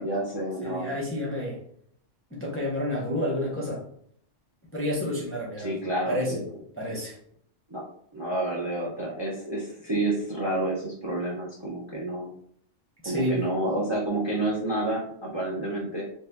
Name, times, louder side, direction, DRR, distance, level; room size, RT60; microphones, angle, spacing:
voice 1, 0.0-0.9 5.6-6.4 7.7-7.8 8.1-12.3 13.0-16.0, right 1 dB, 30° right, -4 dB, 0.5 m, -29 dB
voice 2, 0.6-1.6 2.3-3.8 4.7-5.7 6.1-6.4 6.8-7.2 13.0-13.4, left 1 dB, 15° left, -4 dB, 0.6 m, -29 dB
2.7 x 2.4 x 3.4 m, 0.65 s
omnidirectional pair, 1.2 m